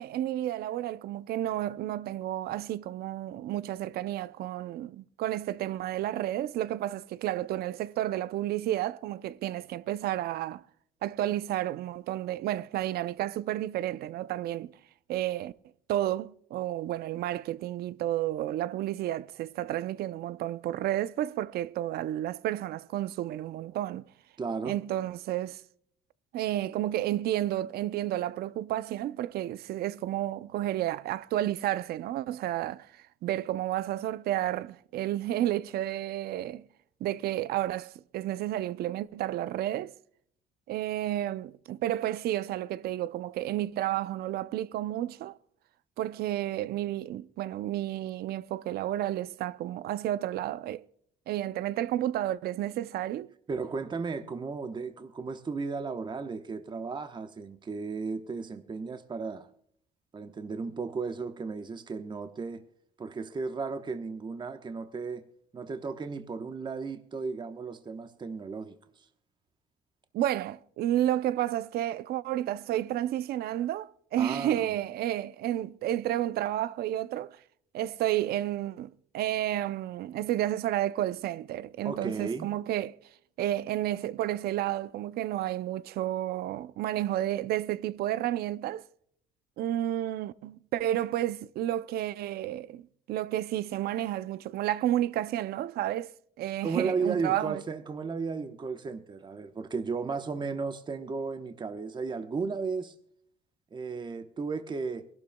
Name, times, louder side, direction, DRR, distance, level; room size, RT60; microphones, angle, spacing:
voice 1, 0.0-10.6 11.0-14.7 15.1-15.5 15.9-24.0 24.6-25.6 26.3-36.6 37.0-39.9 40.7-45.4 46.0-50.9 51.3-53.3 70.1-77.4 77.7-83.0 83.4-88.8 89.6-97.6, right 13 dB, 70° right, 0.5 m, -31 dB
voice 2, 24.4-24.8 53.5-59.5 60.1-62.6 63.0-65.2 65.5-69.1 74.2-74.7 81.8-82.5 96.6-102.9 103.7-105.1, right 4 dB, 25° right, 1.0 m, -34 dB
23.5 x 12.0 x 2.2 m
cardioid pair, 110°, 17 cm